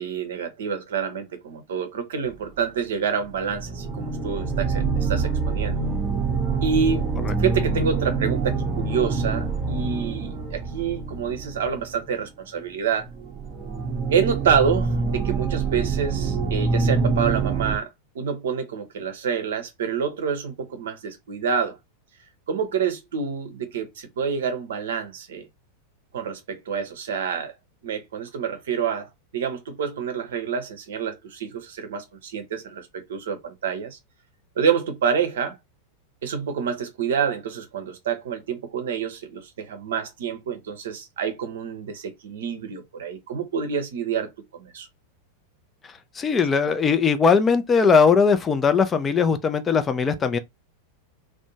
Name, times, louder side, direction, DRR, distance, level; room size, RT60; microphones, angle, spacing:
voice 1, 0.0-5.9 6.6-7.0 7.4-13.1 14.1-17.9 18.1-21.8 22.5-25.5 26.1-27.5 27.8-34.0 34.6-35.6 36.2-44.9, right 6 dB, 60° right, 0.6 m, -27 dB
sound 1, 2.3-2.4 3.2-12.2 13.0-17.8, right 4 dB, 25° right, 0.7 m, -26 dB
voice 2, 46.2-50.4, left 5 dB, 20° left, 0.4 m, -19 dB
2.5 x 2.1 x 2.8 m
figure-of-eight pair, 90°, 0 cm